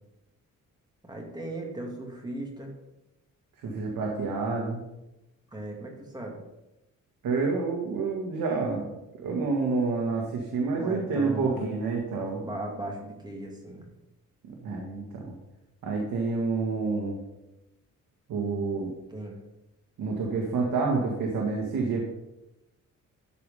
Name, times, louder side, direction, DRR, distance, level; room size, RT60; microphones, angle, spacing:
voice 1, 1.0-2.7 5.5-6.4 10.7-11.7 12.4-13.9 19.1-19.4, right 1 dB, 15° right, 0 dB, 2.3 m, -37 dB
voice 2, 3.6-4.8 7.2-8.9 9.2-12.4 14.6-15.2 15.8-17.2 18.3-18.9 20.0-22.0, right 4 dB, 80° right, -1 dB, 1.9 m, -28 dB
13.0 x 5.0 x 5.5 m, 0.93 s
cardioid pair, 140°, 32 cm